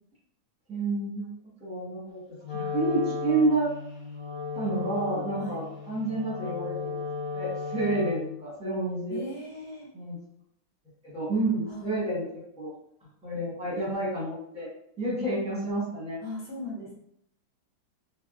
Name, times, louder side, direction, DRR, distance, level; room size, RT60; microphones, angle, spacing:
voice 1, 0.7-1.3 1.6-2.2 2.5-3.7 4.5-6.9 7.3-9.2 9.9-10.2 11.0-12.7 13.2-14.7 15.0-16.2, right 2 dB, 5° right, -7 dB, 0.7 m, -29 dB
Wind instrument woodwind instrument, 2.4-8.4, left 4 dB, 30° left, 0.5 m, -35 dB
voice 2, 9.1-9.9 11.7-11.9 16.2-16.9, left 1 dB, 60° left, -4 dB, 1.1 m, -38 dB
4.1 x 2.1 x 2.4 m, 0.74 s
omnidirectional pair, 2.2 m